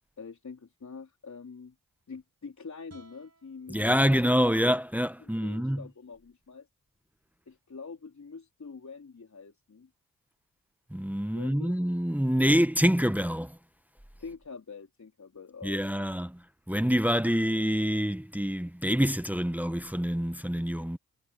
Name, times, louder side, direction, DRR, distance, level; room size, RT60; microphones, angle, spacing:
voice 1, 0.2-1.7 2.1-4.2 5.2-6.7 7.5-9.9 11.3-11.7 14.2-16.1, left 5 dB, 50° left, 4.3 m, -45 dB
sound 1, 2.9-6.1, right 4 dB, 45° right, 7.4 m, -62 dB
voice 2, 3.7-5.8 10.9-13.6 15.6-16.4 16.7-21.0, equal, 5° right, 1.3 m, -26 dB
supercardioid pair, 40°, 36 cm